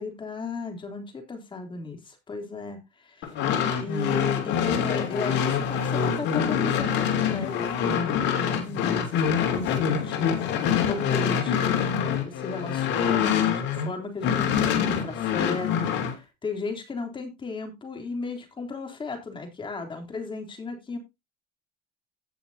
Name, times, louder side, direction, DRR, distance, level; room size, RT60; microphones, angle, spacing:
voice 1, 0.0-3.3 3.8-10.4 10.8-11.9 12.2-21.0, left 3 dB, 25° left, 3.3 m, -35 dB
sound 1, 3.2-13.9 14.2-16.1, left 8 dB, 60° left, 2.9 m, -25 dB
17.0 x 5.8 x 2.8 m
supercardioid pair, 115°, 21 cm